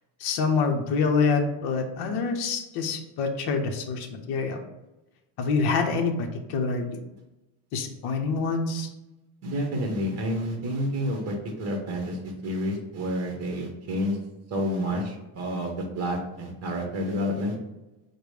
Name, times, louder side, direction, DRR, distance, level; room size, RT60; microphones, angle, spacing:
voice 1, 0.2-4.6 5.4-7.0 7.7-8.9, left 4 dB, 50° left, 4 dB, 0.7 m, -26 dB
voice 2, 9.4-14.2 14.5-17.6, equal, 30° right, 2 dB, 1.0 m, -29 dB
5.0 x 2.2 x 4.9 m, 1.0 s
cardioid pair, 155°, 50 cm